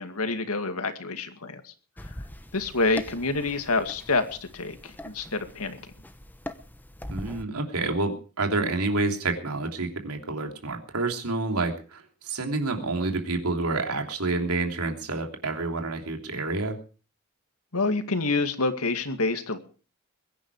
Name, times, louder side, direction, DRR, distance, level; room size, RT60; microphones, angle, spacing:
voice 1, 0.0-1.7 2.1-2.2 2.5-4.2 4.5-5.8 17.7-19.6, left 3 dB, 80° left, 7 dB, 2.2 m, -27 dB
sound 1, 2.0-7.4, left 1 dB, 10° left, 1.0 m, -42 dB
voice 2, 7.1-16.8, right 3 dB, 90° right, 3 dB, 3.1 m, -28 dB
22.0 x 10.5 x 4.8 m, 0.38 s
head